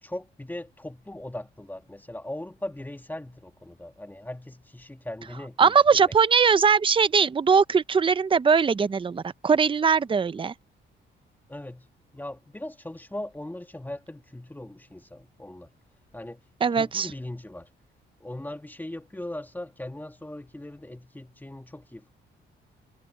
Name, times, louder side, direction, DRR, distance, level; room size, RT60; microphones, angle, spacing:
voice 1, 0.0-5.7 6.0-6.1 11.5-11.9 12.1-15.7 16.1-16.4 16.7-17.7 18.2-22.1, left 1 dB, 10° left, 2.1 m, -39 dB
voice 2, 5.6-10.5 16.6-17.1, right 6 dB, 25° right, 0.7 m, -21 dB
cardioid pair, 90°, 20 cm